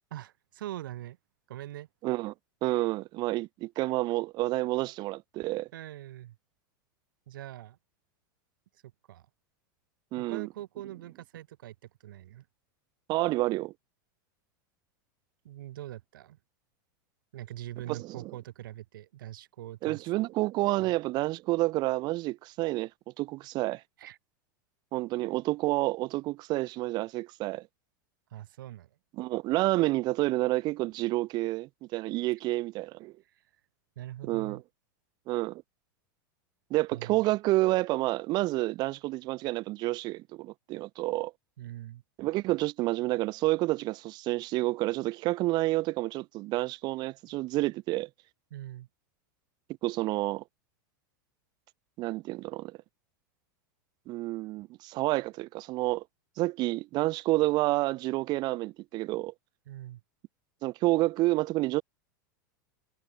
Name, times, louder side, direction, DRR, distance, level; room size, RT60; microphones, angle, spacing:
voice 1, 0.1-1.2 1.5-1.9 5.7-6.4 7.3-7.8 9.1-9.2 10.2-11.7 12.0-12.4 15.4-16.4 17.3-20.0 20.8-20.9 24.0-24.2 28.3-28.9 34.0-34.6 36.9-37.2 41.6-42.0 48.5-48.9 59.7-60.0, right 13 dB, 80° right, 1.0 m, -42 dB
voice 2, 2.0-2.3 2.6-5.7 10.1-10.5 13.1-13.7 17.9-18.3 19.8-22.9 23.2-23.8 24.9-27.6 29.2-33.1 34.2-34.6 35.3-35.6 36.7-41.3 42.2-48.1 49.8-50.4 52.0-52.8 54.1-56.0 56.4-59.3 60.6-61.8, right 19 dB, 40° right, 0.6 m, -29 dB
supercardioid pair, 125°, 11 cm